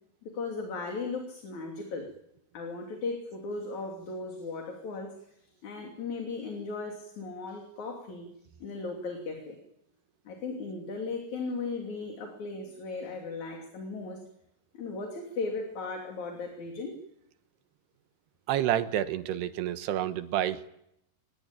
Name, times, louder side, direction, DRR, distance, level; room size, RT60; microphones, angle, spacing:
voice 1, 0.2-2.1 2.5-8.3 8.6-9.6 10.3-14.2 14.7-17.0, left 3 dB, 45° left, 2 dB, 4.0 m, -37 dB
voice 2, 18.5-20.7, right 11 dB, 75° right, 11 dB, 3.2 m, -29 dB
27.0 x 21.0 x 9.1 m, 0.79 s
omnidirectional pair, 4.9 m